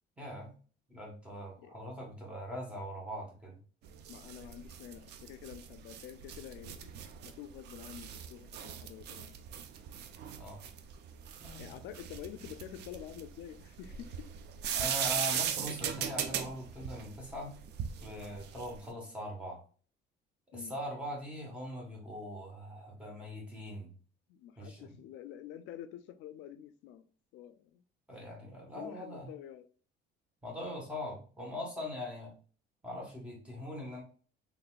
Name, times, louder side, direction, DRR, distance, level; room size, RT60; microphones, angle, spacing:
voice 1, 0.2-0.5 0.9-3.6 10.4-10.6 11.4-11.8 14.7-17.5 18.0-19.6 20.5-23.9 24.6-25.0 28.1-29.3 30.4-32.3 32.8-34.0, left 1 dB, 5° right, 1.1 m, -41 dB
sound 1, 3.8-18.9, right 8 dB, 60° right, 0.5 m, -39 dB
voice 2, 4.1-7.0 7.2-9.4 11.6-14.3 14.6-14.9 15.2-15.4 20.5-20.7 24.3-27.1 27.3-27.8 28.7-29.7, left 11 dB, 75° left, 0.4 m, -48 dB
3.9 x 3.5 x 2.3 m
cardioid pair, 170°, 19 cm